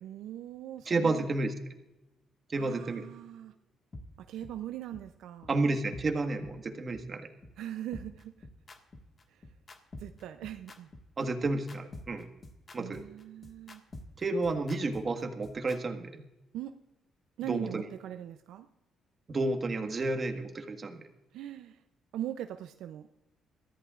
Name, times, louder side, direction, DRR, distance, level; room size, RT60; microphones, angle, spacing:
voice 1, 0.0-1.3 2.5-3.5 4.2-5.5 7.6-8.5 9.3-9.4 10.0-10.9 12.8-13.8 16.5-16.7 17.4-18.7 21.3-21.8 22.1-23.1, right 12 dB, 85° right, 8 dB, 0.5 m, -41 dB
voice 2, 0.9-1.5 2.5-3.0 5.5-7.3 11.2-12.3 12.7-13.0 14.2-16.2 17.5-17.9 19.3-21.0, right 2 dB, 40° right, 5 dB, 1.6 m, -31 dB
sound 1, 3.9-4.0 4.4-4.5 4.9-5.0 5.4-5.5 5.9-6.0 6.4-6.5 6.9-7.0 7.4-7.5 7.9-15.8, left 2 dB, 35° left, 1.7 m, -47 dB
22.0 x 14.0 x 2.5 m, 0.96 s
cardioid pair, 90°, 0 cm